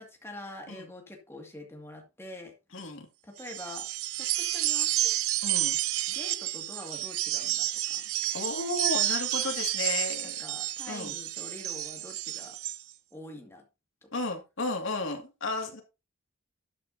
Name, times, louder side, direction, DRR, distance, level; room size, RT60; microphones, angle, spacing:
voice 1, 0.0-2.5 3.2-3.9 4.1-5.1 6.1-8.1 10.2-12.6 13.1-13.6 14.0-14.1, left 1 dB, 10° left, 2 dB, 2.3 m, -45 dB
voice 2, 2.7-3.1 5.4-5.8 8.3-10.4 10.9-11.1 14.1-15.8, left 3 dB, 65° left, 3 dB, 2.3 m, -33 dB
sound 1, 3.4-12.8, right 14 dB, 85° right, 0.7 m, -30 dB
12.5 x 8.5 x 2.8 m, 0.27 s
head